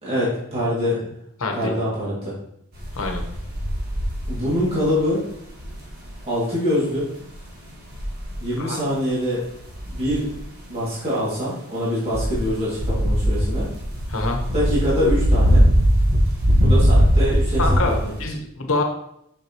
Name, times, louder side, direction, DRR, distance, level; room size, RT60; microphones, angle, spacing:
voice 1, 0.0-1.1 1.5-2.3 4.3-5.2 6.2-7.1 8.4-9.4 9.9-10.3 10.7-13.7 14.5-15.6 16.6-18.1, equal, 25° right, -8 dB, 2.3 m, -24 dB
voice 2, 1.4-1.7 2.9-3.2 8.6-8.8 14.1-14.4 17.6-18.8, left 3 dB, 70° left, 3 dB, 1.2 m, -25 dB
sound 1, 2.7-5.0 5.4-6.2 7.3-7.5 7.9-8.5 9.7-10.5 12.1-18.2, equal, 45° right, 1.6 m, -20 dB
6.6 x 6.3 x 3.0 m, 0.76 s
head